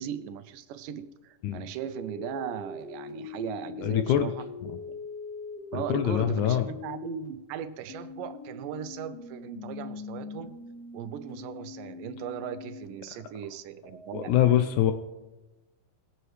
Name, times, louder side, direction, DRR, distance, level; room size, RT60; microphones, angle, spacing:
voice 1, 0.0-4.5 5.7-10.5 10.9-14.6, right 9 dB, 80° right, 11 dB, 2.2 m, -38 dB
sound 1, 1.8-7.3 7.9-12.9 13.8-14.1, left 4 dB, 60° left, 4.1 m, -42 dB
voice 2, 3.8-4.3 4.6-4.8 5.7-6.7 14.1-14.9, left 11 dB, 80° left, 8 dB, 1.8 m, -24 dB
19.0 x 7.8 x 3.2 m, 1.1 s
omnidirectional pair, 3.9 m